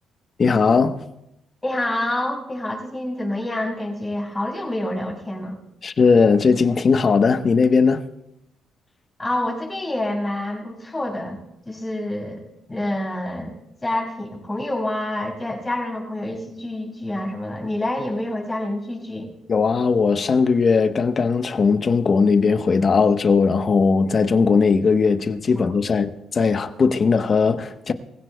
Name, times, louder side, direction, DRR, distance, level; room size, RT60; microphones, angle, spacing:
voice 1, 0.4-1.0 5.8-8.0 19.5-27.9, left 5 dB, 40° left, 0.9 m, -18 dB
voice 2, 1.6-5.6 9.2-11.4 11.7-12.4 12.7-13.5 13.8-19.3 25.6-25.7, left 1 dB, 20° left, 5.7 m, -27 dB
23.5 x 16.0 x 2.2 m
cardioid pair, 90°, 0 cm